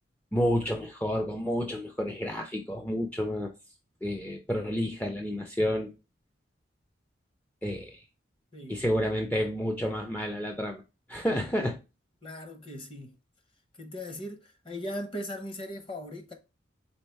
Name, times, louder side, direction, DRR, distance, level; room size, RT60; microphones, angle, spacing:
voice 1, 0.3-3.5 4.0-5.9 7.6-8.0 8.7-10.8 11.1-11.8, equal, 10° left, 0.4 m, -30 dB
voice 2, 12.2-13.1 13.8-16.3, equal, 30° left, 0.8 m, -39 dB
4.1 x 3.8 x 3.3 m
head